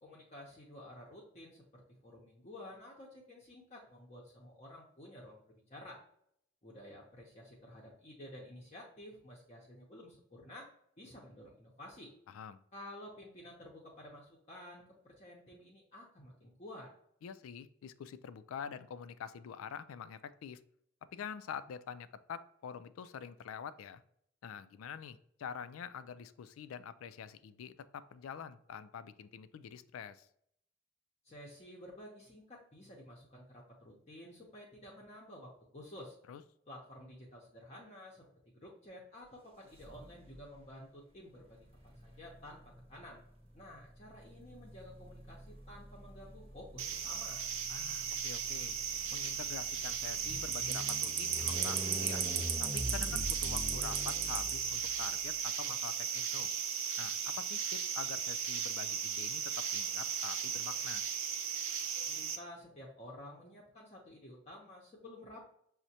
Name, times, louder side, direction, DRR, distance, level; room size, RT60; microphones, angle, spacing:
voice 1, 0.0-6.0 6.6-10.7 11.0-12.1 12.7-16.9 31.2-36.1 36.7-38.3 38.5-43.2 43.5-47.5 62.1-65.4, left 1 dB, 35° left, -3 dB, 0.6 m, -52 dB
voice 2, 12.3-12.6 17.2-20.6 21.1-24.0 24.4-30.3 36.3-36.4 47.7-48.8 49.1-52.2 52.6-56.5 57.0-61.1, left 7 dB, 90° left, 14 dB, 0.3 m, -46 dB
sound 1, 39.7-40.4 41.5-55.2, equal, 30° right, 0.8 m, -44 dB
sound 2, 46.8-62.4, right 7 dB, 85° right, 0.5 m, -36 dB
6.1 x 2.1 x 2.7 m, 0.70 s
head